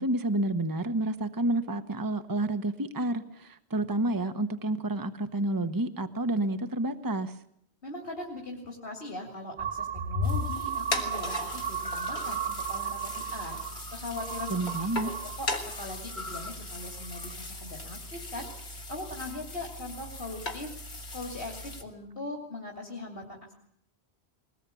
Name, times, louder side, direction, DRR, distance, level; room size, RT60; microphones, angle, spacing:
voice 1, 0.0-7.4 14.5-15.1, right 1 dB, 20° right, 9 dB, 1.1 m, -29 dB
voice 2, 7.8-13.6 13.9-14.6 15.0-15.5 15.8-18.5 18.9-20.7 21.1-23.5, left 2 dB, 60° left, 1 dB, 3.2 m, -40 dB
sound 1, 9.6-15.4 15.7-16.5 17.0-17.3, right 3 dB, 45° right, 2.2 m, -34 dB
sound 2, 10.2-21.8, left 2 dB, 85° left, 3.0 m, -39 dB
22.0 x 20.0 x 8.5 m, 0.68 s
omnidirectional pair, 1.1 m